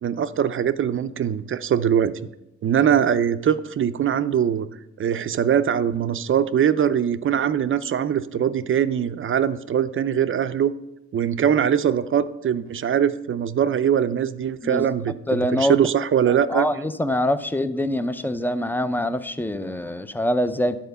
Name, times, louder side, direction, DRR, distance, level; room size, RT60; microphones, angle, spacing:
voice 1, 0.0-2.2 2.6-4.7 5.0-10.7 11.1-16.7, right 9 dB, 45° right, 0.5 m, -22 dB
voice 2, 15.3-15.8 16.3-20.8, left 1 dB, 5° left, 0.5 m, -24 dB
10.5 x 4.4 x 6.8 m
cardioid pair, 90°, 30 cm